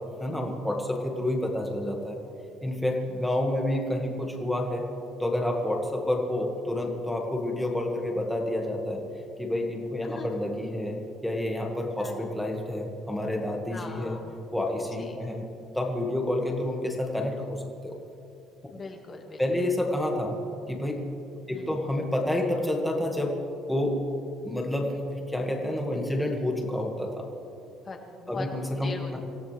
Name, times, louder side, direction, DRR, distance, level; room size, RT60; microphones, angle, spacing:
voice 1, 0.2-2.2 2.6-4.9 5.2-9.0 9.4-14.2 14.5-15.4 15.7-18.0 19.4-20.4 20.7-21.1 21.5-23.4 23.7-24.1 24.4-27.3 28.3-29.2, left 1 dB, ahead, 0 dB, 1.8 m, -29 dB
voice 2, 10.0-10.4 12.0-12.5 13.7-14.2 14.8-15.2 18.7-19.4 21.5-21.7 27.8-28.5 28.8-29.2, left 4 dB, 25° left, 2 dB, 1.9 m, -41 dB
26.0 x 16.5 x 3.4 m, 2.6 s
cardioid pair, 170°, 0 cm